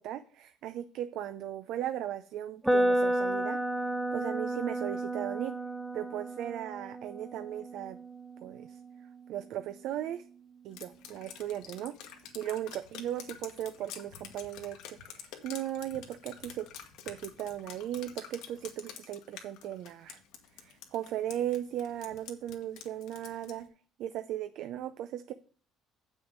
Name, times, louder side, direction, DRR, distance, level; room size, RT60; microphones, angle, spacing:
voice 1, 0.0-3.6 4.1-5.6 5.9-8.0 8.4-8.8 9.3-10.2 10.6-11.9 12.3-16.7 17.0-20.2 20.5-23.7 24.0-25.3, right 11 dB, 70° right, 11 dB, 0.5 m, -37 dB
sound 1, 2.6-10.6, right 1 dB, 5° right, 0.7 m, -33 dB
Drip, 10.7-23.6, left 9 dB, 80° left, 1.4 m, -48 dB
7.3 x 6.3 x 6.1 m, 0.43 s
cardioid pair, 110°, 0 cm